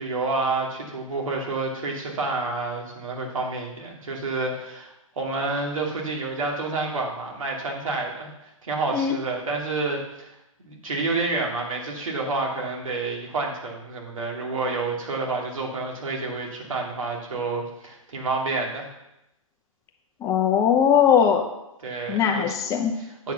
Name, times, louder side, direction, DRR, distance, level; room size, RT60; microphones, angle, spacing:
voice 1, 0.0-8.3 8.6-10.3 10.6-18.9 21.8-22.6 23.0-23.3, right 3 dB, 70° right, -1 dB, 2.7 m, -29 dB
voice 2, 20.2-21.4 22.1-22.9, left 8 dB, 15° left, 4 dB, 0.7 m, -20 dB
8.6 x 5.9 x 5.7 m, 0.88 s
hypercardioid pair, 130°, 18 cm